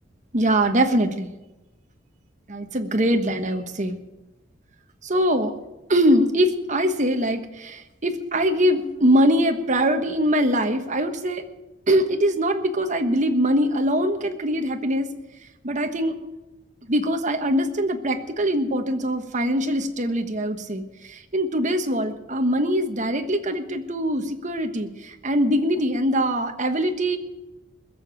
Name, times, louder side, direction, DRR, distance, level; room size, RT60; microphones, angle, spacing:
voice 1, 0.3-1.3 2.5-4.0 5.0-5.5 5.9-11.4 11.9-15.1 15.6-16.2 16.9-27.2, equal, 40° right, 6 dB, 1.3 m, -22 dB
21.0 x 7.0 x 7.5 m, 1.0 s
head